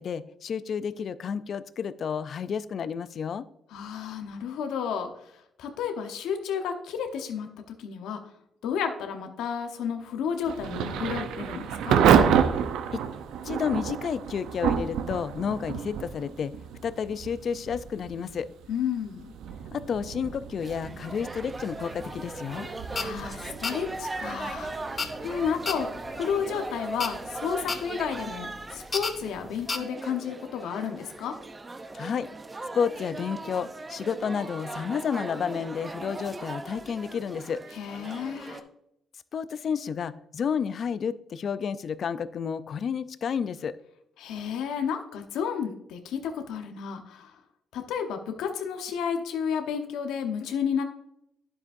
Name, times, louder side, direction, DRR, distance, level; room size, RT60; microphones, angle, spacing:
voice 1, 0.0-3.4 12.9-13.0 13.4-16.5 16.8-18.5 19.7-22.7 31.9-32.3 32.7-37.6 39.3-43.7, left 7 dB, 55° left, 15 dB, 0.4 m, -31 dB
voice 2, 3.7-5.1 5.6-7.5 7.8-8.2 8.6-12.0 18.7-19.3 22.9-25.9 26.1-31.4 37.7-38.6 44.2-47.3 47.7-50.8, left 7 dB, 90° left, 6 dB, 0.9 m, -32 dB
Thunder / Rain, 10.4-27.2, right 8 dB, 85° right, 0.6 m, -29 dB
sound 1, 20.6-38.6, right 2 dB, 25° right, 0.7 m, -39 dB
sound 2, 22.0-29.8, left 4 dB, 35° left, 0.8 m, -35 dB
9.7 x 7.4 x 2.6 m, 0.79 s
cardioid pair, 90°, 0 cm